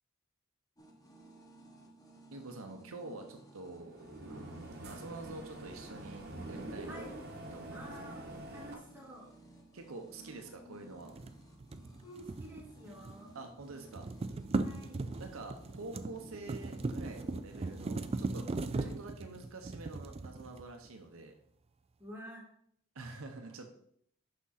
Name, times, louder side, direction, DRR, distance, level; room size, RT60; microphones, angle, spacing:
sound 1, 0.8-18.7, right 2 dB, 15° left, 0.9 m, -57 dB
voice 1, 2.3-4.0 4.3-7.0 7.5-8.4 9.7-11.2 13.3-14.1 15.2-18.5 18.8-21.3 22.9-23.7, right 3 dB, 75° right, 4 dB, 0.8 m, -47 dB
sound 2, 3.7-8.8, right 1 dB, 50° right, 1.3 m, -46 dB
voice 2, 7.7-9.3 10.2-10.9 12.0-13.3 14.6-15.1 18.7-19.0 22.0-22.5, equal, 10° right, -3 dB, 1.8 m, -50 dB
sound 3, 11.1-13.3 13.6-20.9, right 3 dB, 30° right, 0.3 m, -38 dB
6.1 x 5.4 x 4.1 m, 0.68 s
head